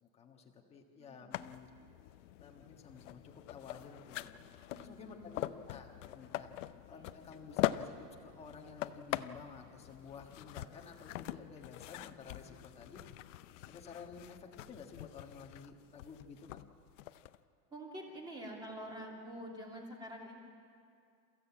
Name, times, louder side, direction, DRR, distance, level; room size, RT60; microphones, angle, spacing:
voice 1, 0.0-1.7 2.4-4.4 4.8-6.5 6.9-13.0 13.7-16.6, left 5 dB, 15° left, 1 dB, 1.4 m, -52 dB
voice 2, 1.0-1.4 4.7-5.4 6.6-7.0 17.7-20.4, equal, 10° right, -1 dB, 2.7 m, -47 dB
sound 1, 1.3-17.4, left 14 dB, 50° left, 0.7 m, -43 dB
28.5 x 15.5 x 8.7 m, 2.4 s
supercardioid pair, 175°, 48 cm